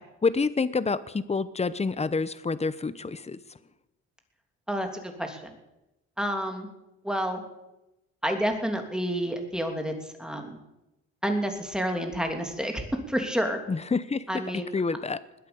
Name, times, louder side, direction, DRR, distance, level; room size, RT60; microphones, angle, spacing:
voice 1, 0.2-3.4 13.7-15.2, left 4 dB, 20° left, 16 dB, 0.9 m, -28 dB
voice 2, 4.7-5.4 6.2-6.7 7.0-7.4 8.2-9.9 10.2-10.6 11.2-13.6 14.3-14.7, equal, ahead, 4 dB, 3.0 m, -29 dB
20.5 x 8.6 x 7.0 m, 0.93 s
cardioid pair, 90°, 30 cm